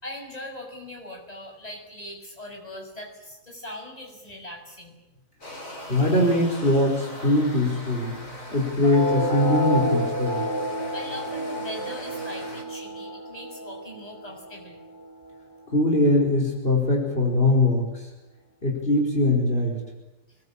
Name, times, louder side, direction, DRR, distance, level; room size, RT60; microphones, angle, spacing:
voice 1, 0.0-4.9 10.9-14.8, left 1 dB, 25° left, 1 dB, 6.8 m, -40 dB
sound 1, 5.4-12.6, left 1 dB, 75° left, 5.7 m, -41 dB
voice 2, 5.9-8.2 8.5-10.4 15.7-18.1 18.6-19.8, left 2 dB, 45° left, 0 dB, 5.4 m, -22 dB
sound 2, 8.8-15.8, equal, 15° right, 5.6 m, -30 dB
27.0 x 22.0 x 8.9 m, 1.0 s
omnidirectional pair, 1.4 m